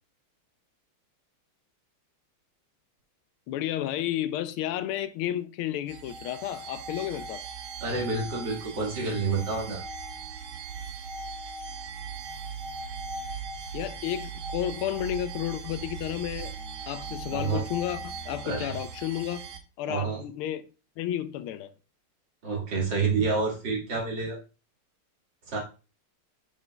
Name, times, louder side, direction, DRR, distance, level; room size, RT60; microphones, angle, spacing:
voice 1, 3.5-7.4 13.7-16.5 16.9-19.4 19.8-20.6 21.0-21.7, left 12 dB, 90° left, 1.5 m, -32 dB
sound 1, 5.9-19.6, right 4 dB, 75° right, 1.6 m, -39 dB
voice 2, 7.8-9.8 17.3-17.6 18.4-18.7 19.9-20.2 22.4-24.4 25.5-25.6, right 4 dB, 55° right, 2.5 m, -28 dB
9.5 x 5.0 x 2.2 m
omnidirectional pair, 2.3 m